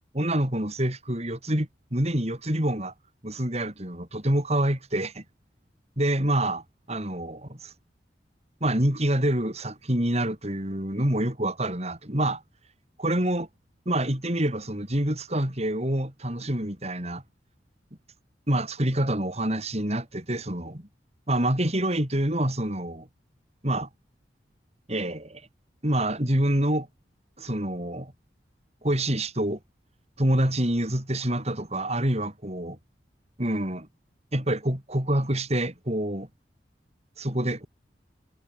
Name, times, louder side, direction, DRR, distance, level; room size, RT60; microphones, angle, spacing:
voice 1, 0.1-2.9 3.2-5.2 6.0-7.7 8.6-12.4 13.0-13.5 13.8-17.2 18.5-20.9 21.3-23.1 23.6-23.9 24.9-25.4 25.8-26.9 27.4-28.1 28.8-29.6 30.2-32.8 33.4-33.9 34.3-36.3 37.2-37.7, right 1 dB, 35° right, 5.2 m, -26 dB
head